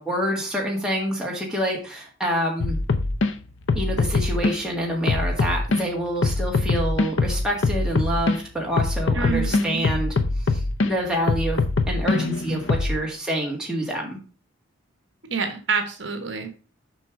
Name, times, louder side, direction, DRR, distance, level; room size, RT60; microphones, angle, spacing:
voice 1, 0.0-2.8 3.8-10.2 10.4-11.6 11.9-14.2, equal, 5° right, -2 dB, 1.8 m, -27 dB
sound 1, 2.6-3.3 3.7-4.6 5.1-5.8 6.2-8.4 8.8-10.9 11.3-13.0, left 3 dB, 65° left, 0.6 m, -23 dB
voice 2, 9.1-9.9 15.3-16.6, right 5 dB, 60° right, 6 dB, 1.3 m, -27 dB
7.0 x 5.5 x 4.8 m, 0.38 s
head